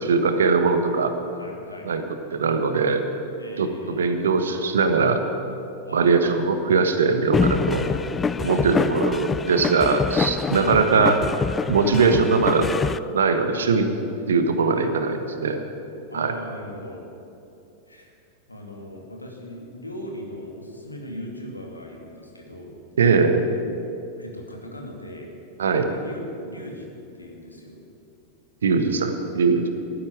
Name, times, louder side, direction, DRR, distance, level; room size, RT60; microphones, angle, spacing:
voice 1, 0.0-1.1 1.8-2.0 2.3-3.0 3.6-5.2 5.9-7.8 8.4-11.2 11.7-12.7 13.1-13.9 14.3-15.6 16.1-16.3 23.0-23.4 25.6-25.9 28.6-29.7, right 4 dB, 65° right, 7 dB, 1.3 m, -21 dB
voice 2, 1.3-1.9 3.4-4.1 5.8-6.1 7.8-8.0 8.4-9.2 11.8-12.0 13.5-13.7 14.7-14.9 16.1-17.0 17.9-18.1 18.5-22.7 24.2-25.3 25.8-26.9 27.1-27.8, equal, 85° left, 1 dB, 2.4 m, -39 dB
sound 1, 7.3-13.0, left 5 dB, 15° left, 0.4 m, -25 dB
11.5 x 10.5 x 9.5 m, 2.8 s
figure-of-eight pair, 90°, 0 cm